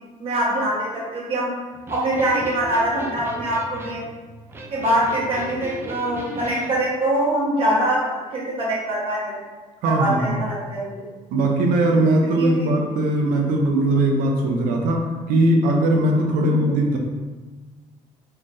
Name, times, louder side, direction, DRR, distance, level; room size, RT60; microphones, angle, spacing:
voice 1, 0.2-1.5 1.9-4.0 4.7-9.4 9.8-11.0 12.4-12.7 16.4-16.8, right 1 dB, 40° right, -5 dB, 1.3 m, -23 dB
Electric guitar, 1.7-6.7, right 1 dB, 15° right, 0.5 m, -36 dB
voice 2, 9.8-10.4 11.3-17.0, right 1 dB, 85° right, 1 dB, 0.6 m, -20 dB
3.7 x 3.3 x 2.6 m, 1.3 s
cardioid pair, 125°, 14 cm